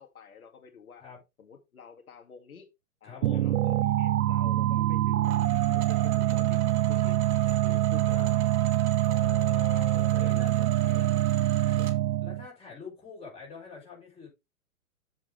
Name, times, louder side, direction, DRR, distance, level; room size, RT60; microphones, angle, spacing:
voice 1, 0.0-1.0 1.4-2.7 3.0-5.4 5.6-8.5 9.5-11.2 11.7-11.9, left 6 dB, 75° left, 2.4 m, -50 dB
voice 2, 3.0-3.6 8.1-8.3 9.0-10.6 12.2-14.3, left 6 dB, 15° left, 5.0 m, -44 dB
sound 1, 3.2-12.5, right 14 dB, 75° right, 0.5 m, -25 dB
sound 2, 5.2-12.0, right 9 dB, 50° right, 2.9 m, -43 dB
7.7 x 7.4 x 3.4 m
hypercardioid pair, 130°, 43 cm